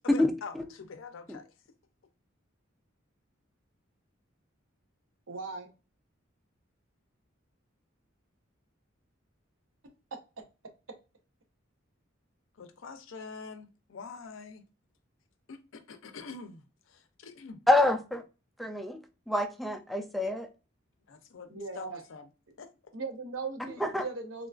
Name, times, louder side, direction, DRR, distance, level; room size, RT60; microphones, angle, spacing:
voice 1, 0.0-1.5 12.5-14.6 15.5-17.6 21.1-22.3 22.6-22.7, left 5 dB, 70° left, 0.5 m, -45 dB
voice 2, 5.3-5.7 10.4-10.5 21.5-22.0 22.9-24.5, right 4 dB, 80° right, 0.8 m, -38 dB
voice 3, 17.7-18.2 18.6-20.5 23.8-24.1, left 1 dB, ahead, 0.3 m, -27 dB
3.7 x 2.3 x 2.3 m
head